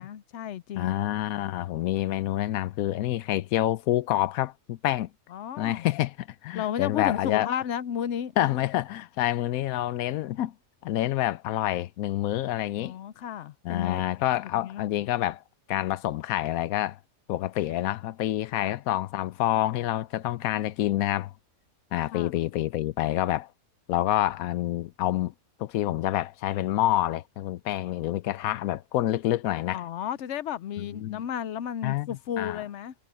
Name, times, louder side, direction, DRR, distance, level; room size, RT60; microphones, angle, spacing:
voice 1, 0.0-0.9 5.3-5.9 6.5-8.3 12.8-14.0 14.5-14.9 18.5-18.8 22.1-22.4 29.7-32.9, left 9 dB, 65° left, 0.8 m, -33 dB
voice 2, 0.8-5.1 5.6-7.5 8.4-10.5 10.8-12.9 13.6-15.4 15.7-17.0 17.3-21.3 21.9-23.5 23.9-25.3 25.6-29.8 30.8-31.2 31.8-32.6, left 14 dB, 90° left, 1.0 m, -27 dB
omnidirectional pair, 1.5 m